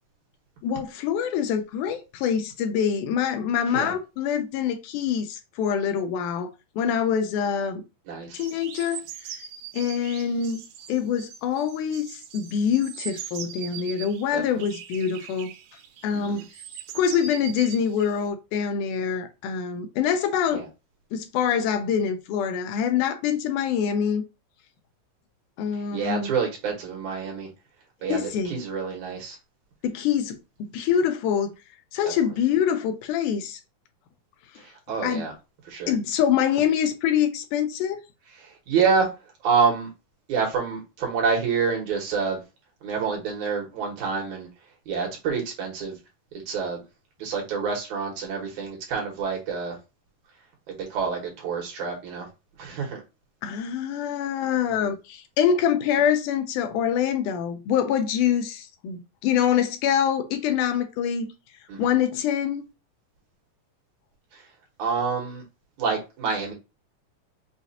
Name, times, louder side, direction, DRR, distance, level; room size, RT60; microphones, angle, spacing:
voice 1, 0.6-6.5 6.8-7.8 8.3-9.0 9.7-10.6 10.9-15.5 16.0-16.5 17.0-20.6 21.1-24.2 25.6-26.3 28.1-28.6 29.8-31.5 31.9-33.6 35.0-35.2 35.9-38.0 53.4-61.3 61.8-62.6, left 8 dB, 80° left, 2.0 m, -25 dB
voice 2, 8.1-8.4 14.3-14.6 16.1-16.4 20.5-20.7 25.9-27.5 28.0-29.4 32.0-32.1 34.6-35.3 35.7-36.0 38.4-39.1 39.4-39.9 40.3-42.4 42.8-44.5 44.9-45.9 46.5-46.8 47.2-49.8 50.8-52.3 52.6-53.0 61.7-61.9 64.3-64.4 64.8-65.4 65.8-66.5, right 5 dB, 65° right, 2.5 m, -27 dB
sound 1, 8.4-14.2 14.6-18.3, right 9 dB, 80° right, 2.3 m, -41 dB
5.8 x 2.4 x 2.7 m
omnidirectional pair, 3.8 m